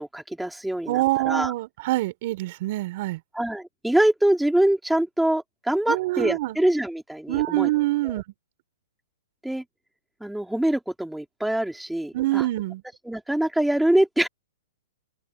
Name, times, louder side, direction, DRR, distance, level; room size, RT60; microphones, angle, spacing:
voice 1, 0.0-1.5 3.3-7.7 8.0-8.2 9.4-9.6 10.2-12.5 13.0-14.3, right 1 dB, ahead, 3.2 m, -24 dB
voice 2, 0.9-3.2 5.9-6.6 7.3-8.2 12.1-12.8, right 17 dB, 45° right, 5.5 m, -25 dB
open air
hypercardioid pair, 150°, 0 cm